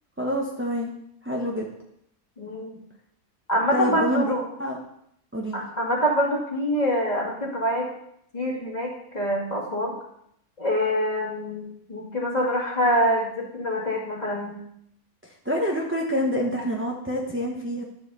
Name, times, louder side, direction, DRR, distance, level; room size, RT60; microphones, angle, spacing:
voice 1, 0.2-0.9 1.2-1.7 3.7-4.3 4.6-4.8 5.3-5.6 15.2-17.8, equal, 10° right, -2 dB, 1.0 m, -27 dB
voice 2, 2.4-2.8 3.5-4.5 5.5-7.9 8.3-9.9 10.6-14.6, equal, 25° left, -3 dB, 2.3 m, -25 dB
11.0 x 4.8 x 6.8 m, 0.74 s
omnidirectional pair, 1.7 m